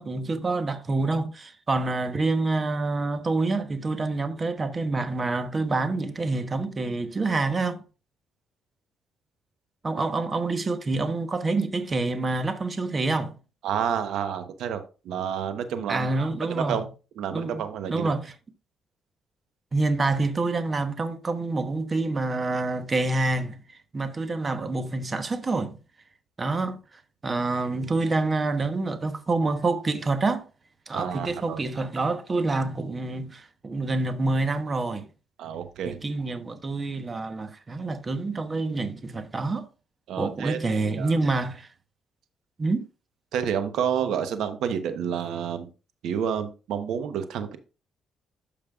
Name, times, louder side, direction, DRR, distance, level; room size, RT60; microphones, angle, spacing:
voice 1, 0.0-7.8 9.8-13.4 15.9-16.8 17.3-17.6 17.9-18.3 19.7-23.6 23.9-25.8 26.4-26.8 27.2-30.5 30.9-35.0 35.9-39.7 40.2-41.7 42.6-42.8, right 3 dB, 30° right, 1.1 m, -27 dB
voice 2, 13.6-16.9 17.2-18.2 30.9-31.6 35.4-36.1 40.1-41.1 43.3-45.7 46.0-47.6, right 8 dB, 80° right, 1.0 m, -30 dB
12.0 x 5.3 x 2.4 m
cardioid pair, 90°, 0 cm